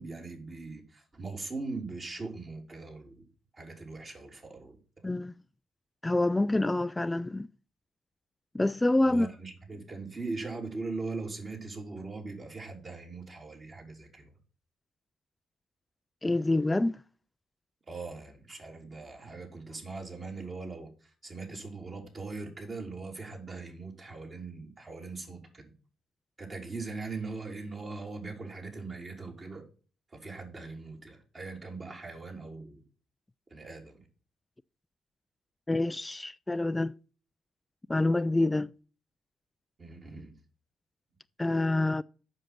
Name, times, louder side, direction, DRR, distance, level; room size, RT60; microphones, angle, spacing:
voice 1, 0.0-3.2 3.5-4.8 9.0-14.3 17.9-20.9 21.2-25.7 26.4-29.6 30.1-32.8 33.5-34.0 39.8-40.3, right 3 dB, 35° right, 3.2 m, -40 dB
voice 2, 5.0-5.3 6.0-7.5 8.5-9.3 16.2-17.0 35.7-36.9 37.9-38.7 41.4-42.0, left 2 dB, 15° left, 0.3 m, -27 dB
7.6 x 6.4 x 5.8 m
figure-of-eight pair, 45°, 0 cm